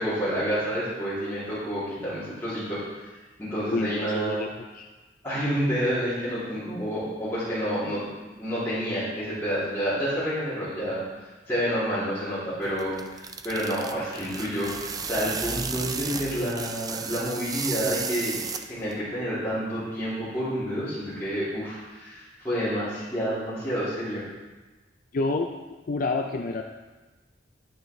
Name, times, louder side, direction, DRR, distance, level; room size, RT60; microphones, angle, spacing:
voice 1, 0.0-3.1 3.4-4.5 5.2-8.0 8.4-11.0 11.5-18.4 18.7-24.2, equal, 15° left, -14 dB, 2.9 m, -29 dB
voice 2, 3.7-4.5 4.7-4.9 25.1-25.5 25.9-26.6, left 3 dB, 45° left, 4 dB, 0.5 m, -28 dB
sound 1, 12.6-19.0, right 5 dB, 20° right, 0.4 m, -34 dB
10.5 x 9.0 x 3.2 m, 1.2 s
head